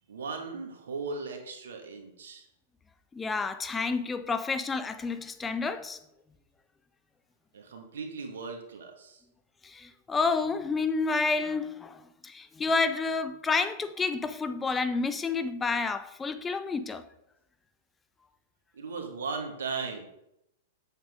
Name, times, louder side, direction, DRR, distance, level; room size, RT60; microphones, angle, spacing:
voice 1, 0.1-2.5 7.5-9.2 18.7-20.1, right 4 dB, 80° right, 2.1 m, -37 dB
voice 2, 3.1-6.0 9.6-17.0, left 4 dB, 15° left, 0.5 m, -30 dB
8.1 x 7.8 x 3.8 m
hypercardioid pair, 120°, 0 cm